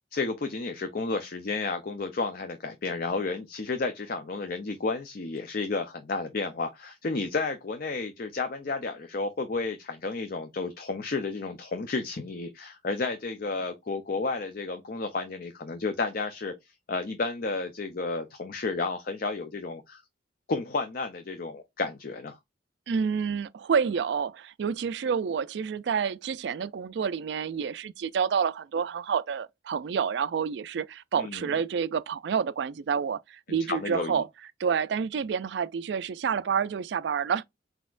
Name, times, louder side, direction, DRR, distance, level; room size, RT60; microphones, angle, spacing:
voice 1, 0.1-16.5 16.9-20.0 20.5-22.4 31.2-31.5 33.5-34.1, left 3 dB, 50° left, 0.6 m, -32 dB
voice 2, 22.9-34.3 34.6-37.4, right 6 dB, 65° right, 0.3 m, -28 dB
4.5 x 4.1 x 2.4 m
head